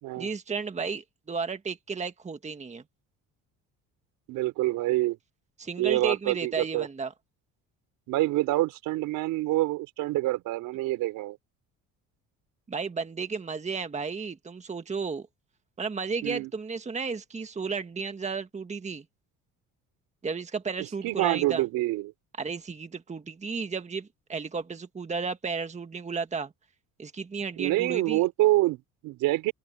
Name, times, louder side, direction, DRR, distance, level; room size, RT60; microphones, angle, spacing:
voice 1, 0.1-2.8 5.6-7.1 12.7-15.3 15.8-19.0 20.2-21.6 22.4-26.5 27.0-28.2, right 5 dB, 20° right, 1.5 m, -33 dB
voice 2, 4.3-5.2 5.8-6.9 8.1-11.4 16.2-16.5 21.0-22.1 27.6-29.5, right 17 dB, 80° right, 4.0 m, -26 dB
open air
cardioid pair, 105°, 33 cm